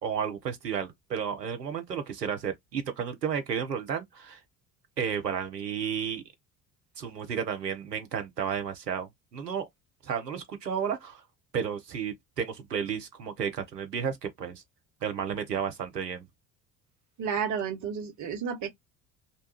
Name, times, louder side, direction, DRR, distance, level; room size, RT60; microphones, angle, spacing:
voice 1, 0.0-4.4 5.0-6.2 7.0-9.7 10.0-11.2 11.5-14.6 15.0-16.3, right 7 dB, 85° right, 0.6 m, -32 dB
voice 2, 17.2-18.7, right 7 dB, 40° right, 0.9 m, -31 dB
2.7 x 2.2 x 2.8 m
figure-of-eight pair, 60°, 48 cm